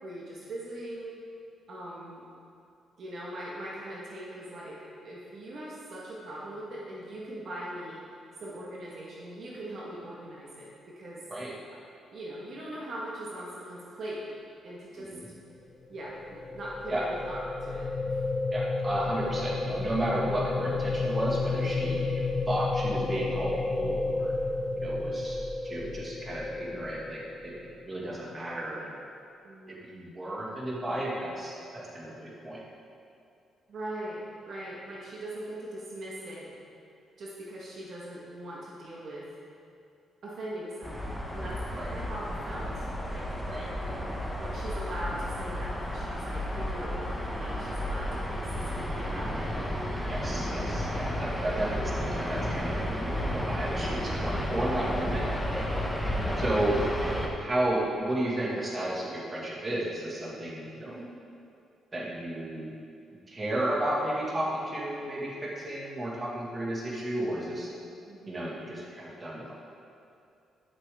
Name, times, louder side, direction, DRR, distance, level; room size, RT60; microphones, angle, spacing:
voice 1, 0.0-1.2 1.7-2.3 3.0-8.0 8.4-11.2 12.1-14.3 14.6-15.1 15.9-18.2 29.4-30.1 33.7-36.5 37.2-39.3 40.2-43.4 44.4-49.5 51.3-51.6 56.1-56.6 60.8-61.1 68.1-68.6, right 1 dB, 60° right, -5 dB, 1.8 m, -41 dB
voice 2, 14.9-15.2 16.9-17.1 18.5-24.3 24.8-25.4 25.6-28.9 29.7-32.6 41.7-41.9 43.5-43.7 50.1-52.8 53.3-55.3 56.4-61.0 61.9-62.7 63.3-67.7 68.3-69.5, right 1 dB, 30° right, -4 dB, 2.2 m, -33 dB
sound 1, 15.8-28.0, left 3 dB, 55° left, 1.2 m, -31 dB
sound 2, 40.8-57.3, equal, ahead, 1.3 m, -32 dB
12.5 x 7.3 x 3.8 m, 2.6 s
cardioid pair, 80°, 0 cm